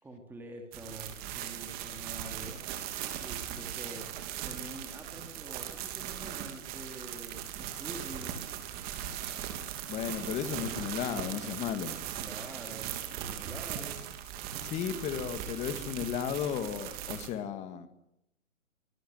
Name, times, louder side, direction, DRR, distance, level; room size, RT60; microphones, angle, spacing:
voice 1, 0.0-2.6 3.2-4.1 4.4-8.4 12.0-14.0, right 2 dB, 5° right, 2 dB, 2.7 m, -46 dB
sound 1, 0.7-17.3, right 10 dB, 25° right, 3.3 m, -39 dB
voice 2, 9.9-11.9 14.6-17.9, left 9 dB, 15° left, 11 dB, 2.0 m, -34 dB
25.0 x 22.5 x 7.8 m, 0.80 s
hypercardioid pair, 145°, 40 cm